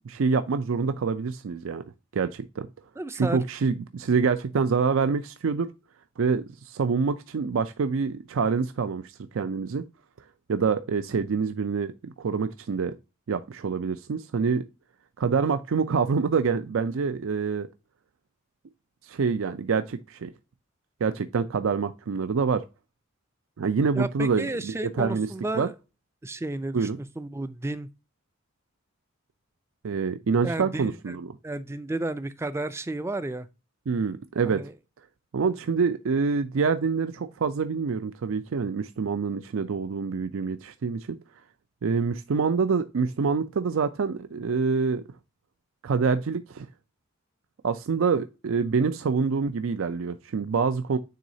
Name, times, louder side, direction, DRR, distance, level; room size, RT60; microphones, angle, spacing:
voice 1, 0.0-1.8 2.1-2.7 3.2-5.7 6.2-9.8 10.5-13.0 13.3-14.6 15.2-17.7 19.0-20.3 21.0-22.6 23.6-25.3 25.5-25.7 26.7-27.0 29.8-31.3 33.9-34.6 35.3-41.2 41.8-45.0 45.8-46.7 47.6-51.0, right 5 dB, 75° right, 0.4 m, -26 dB
voice 2, 3.0-3.4 23.9-25.7 26.2-26.9 27.2-27.9 30.4-33.5 34.5-34.7, right 2 dB, 15° right, 0.4 m, -32 dB
9.2 x 3.9 x 2.7 m
head